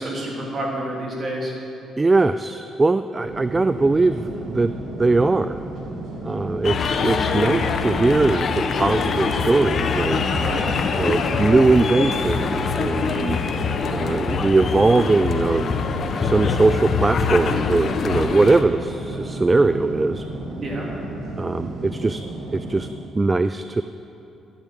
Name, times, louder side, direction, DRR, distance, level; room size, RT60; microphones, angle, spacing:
voice 1, 0.0-1.5 10.4-10.7 20.6-20.9, right 1 dB, 40° right, -2 dB, 3.2 m, -28 dB
voice 2, 2.0-4.7 5.0-5.6 6.2-10.3 11.0-13.4 13.9-15.8 16.2-20.3 21.4-22.2 22.5-22.9 23.1-23.8, right 3 dB, 20° right, 11 dB, 0.3 m, -20 dB
sound 1, 3.2-22.9, right 1 dB, 70° right, 2.4 m, -33 dB
sound 2, 6.6-18.6, left 5 dB, 50° left, 0.8 m, -24 dB
11.5 x 9.0 x 7.7 m, 3.0 s
cardioid pair, 90°, 0 cm